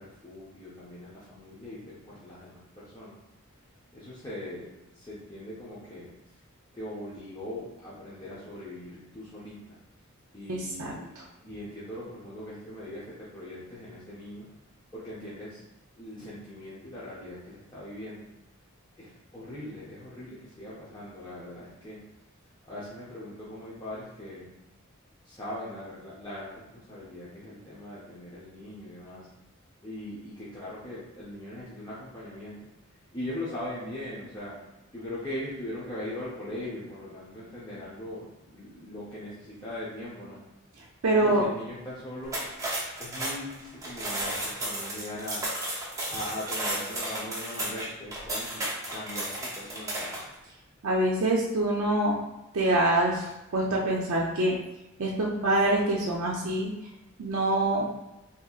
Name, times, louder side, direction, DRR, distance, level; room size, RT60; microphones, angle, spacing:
voice 1, 0.0-3.2 3.9-6.1 6.7-9.8 10.3-11.1 11.4-14.5 14.9-15.6 16.0-18.3 19.0-22.0 22.6-24.5 25.2-29.3 29.8-32.7 33.1-34.7 34.9-40.4 41.1-42.4 43.0-45.4 46.1-50.2, left 1 dB, 20° left, -9 dB, 0.7 m, -40 dB
voice 2, 10.5-11.2 41.0-41.5 50.8-52.2 52.5-54.6 55.0-56.7 57.2-57.9, right 1 dB, 80° right, -2 dB, 0.5 m, -25 dB
sound 1, 42.2-50.3, right 1 dB, 15° right, 0.6 m, -33 dB
3.8 x 2.8 x 2.3 m, 0.95 s
head